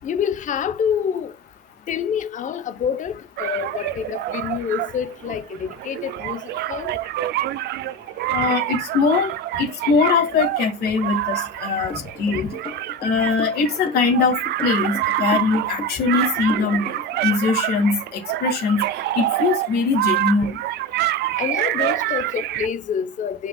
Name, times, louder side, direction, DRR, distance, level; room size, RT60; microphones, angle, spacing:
voice 1, 0.0-1.3 1.9-6.4 6.7-6.9 11.9-12.1 12.3-12.5 21.4-23.5, left 7 dB, 50° left, 1.0 m, -27 dB
sound 1, 3.4-22.7, right 15 dB, 75° right, 0.6 m, -26 dB
voice 2, 8.3-12.5 13.0-18.8 19.2-20.6, left 4 dB, 70° left, 2.4 m, -22 dB
sound 2, 11.9-17.2, left 4 dB, 30° left, 2.7 m, -35 dB
9.1 x 5.2 x 2.4 m
cardioid pair, 110°, 17 cm